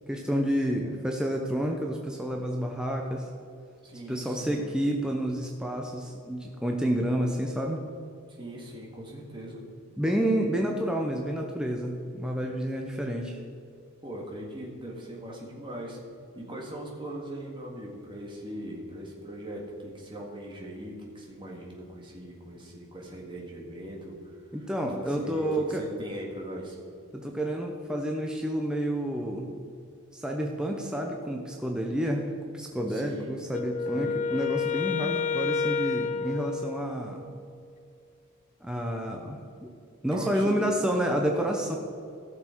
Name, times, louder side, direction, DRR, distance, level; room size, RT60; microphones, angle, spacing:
voice 1, 0.1-3.3 4.1-7.8 10.0-13.4 24.5-25.8 27.1-29.5 30.1-37.2 38.6-39.7 40.0-41.8, right 1 dB, 5° right, 1 dB, 0.7 m, -29 dB
voice 2, 3.8-5.2 8.3-9.6 14.0-16.0 16.4-24.4 25.1-26.8 32.9-33.4 33.9-34.3 40.1-40.7 41.1-41.3, right 1 dB, 20° right, -1 dB, 1.8 m, -40 dB
Wind instrument woodwind instrument, 33.5-37.4, left 5 dB, 30° left, 0.4 m, -30 dB
15.0 x 6.7 x 4.5 m, 2.4 s
head